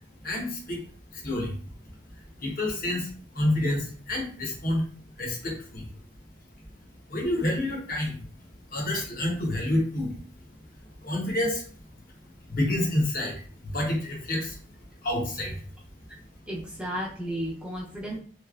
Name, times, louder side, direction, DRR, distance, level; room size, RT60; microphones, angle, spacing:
voice 1, 0.0-1.5 1.9-4.8 5.2-5.9 7.1-8.3 8.7-10.2 11.0-11.7 12.5-14.6 15.0-15.6, left 1 dB, 50° left, -1 dB, 1.0 m, -29 dB
voice 2, 16.5-18.2, equal, 5° right, -4 dB, 0.6 m, -33 dB
3.2 x 2.8 x 2.4 m, 0.43 s
head